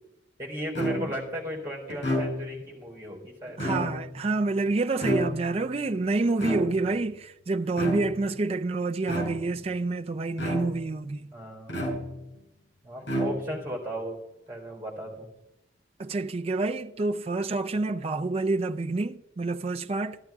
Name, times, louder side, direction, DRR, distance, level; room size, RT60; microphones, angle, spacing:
voice 1, 0.4-3.6 11.3-11.8 12.8-14.2 14.5-15.3, equal, 15° right, 3.6 m, -36 dB
sound 1, 0.7-1.3 1.9-2.7 3.5-4.2 5.0-5.7 6.4-7.0 7.7-8.3 9.0-9.6 10.4-11.0 11.7-12.4 13.0-13.7, equal, 75° left, 4.5 m, -31 dB
voice 2, 3.6-11.3 16.0-20.2, right 3 dB, 35° right, 0.4 m, -28 dB
13.5 x 13.0 x 3.6 m
head